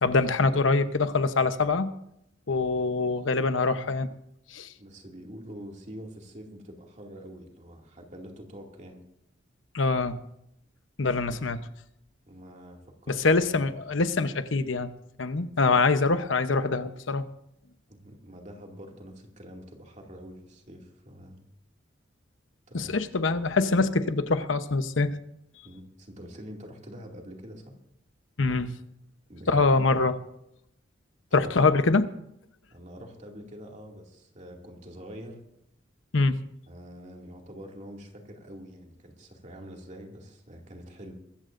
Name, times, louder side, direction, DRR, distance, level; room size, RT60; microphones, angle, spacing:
voice 1, 0.0-1.9 2.5-4.1 4.5-4.7 9.7-10.2 11.0-11.7 13.1-14.9 15.2-17.2 22.7-25.2 28.4-28.7 29.5-30.2 31.3-32.1 36.1-36.4, left 3 dB, 80° left, 10 dB, 0.9 m, -24 dB
voice 2, 4.8-9.0 12.3-13.2 17.9-21.4 22.7-23.0 25.6-27.8 29.3-29.7 31.4-31.5 32.7-35.4 36.7-41.1, equal, 40° right, 1 dB, 2.4 m, -45 dB
23.0 x 14.0 x 2.6 m, 0.77 s
head